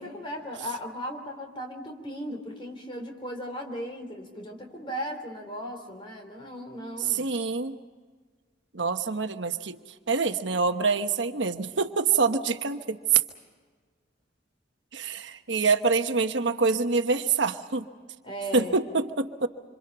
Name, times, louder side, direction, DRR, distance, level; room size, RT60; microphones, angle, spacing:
voice 1, 0.0-7.3 18.2-18.8, equal, 25° left, 3 dB, 3.7 m, -37 dB
voice 2, 7.0-7.8 8.7-9.8 10.1-13.2 14.9-17.8 18.5-19.5, right 4 dB, 80° right, 7 dB, 1.2 m, -25 dB
26.5 x 26.5 x 5.6 m, 1.5 s
head